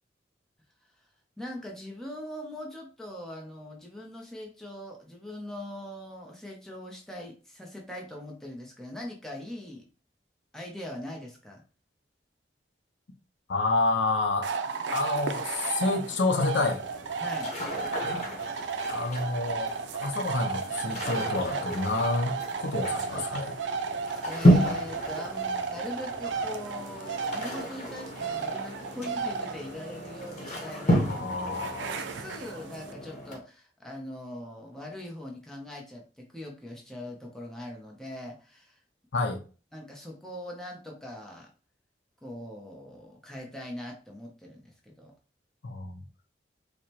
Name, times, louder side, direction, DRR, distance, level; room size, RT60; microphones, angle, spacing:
voice 1, 1.4-9.9 10.5-11.6 17.2-17.6 24.2-31.4 31.9-38.8 39.7-41.5 42.2-45.1, left 1 dB, 5° left, 0.7 m, -41 dB
voice 2, 13.5-14.5 14.9-16.8 18.9-19.7 20.0-23.5 31.1-32.1 39.1-39.4 45.6-46.0, left 3 dB, 80° left, 0.6 m, -29 dB
sound 1, 14.4-32.9, right 5 dB, 85° right, 0.4 m, -34 dB
sound 2, 16.5-33.4, equal, 40° left, 1.0 m, -31 dB
4.7 x 2.1 x 2.9 m
head